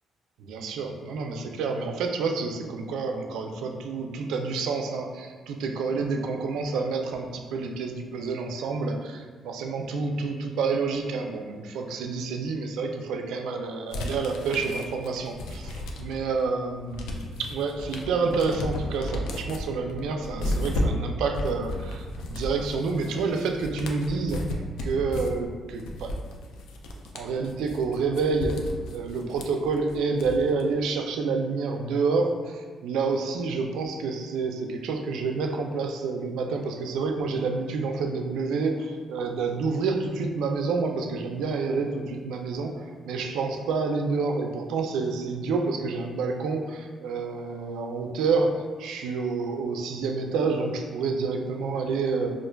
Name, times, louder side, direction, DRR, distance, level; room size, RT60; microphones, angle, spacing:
voice 1, 0.4-24.4 24.8-26.1 27.1-28.6 28.9-48.5 48.8-52.3, right 4 dB, 85° right, 3 dB, 0.3 m, -28 dB
sound 1, 13.9-16.3 16.7-30.6, left 1 dB, 90° left, 0.4 m, -33 dB
4.3 x 2.4 x 2.2 m, 1.5 s
cardioid pair, 90°, 0 cm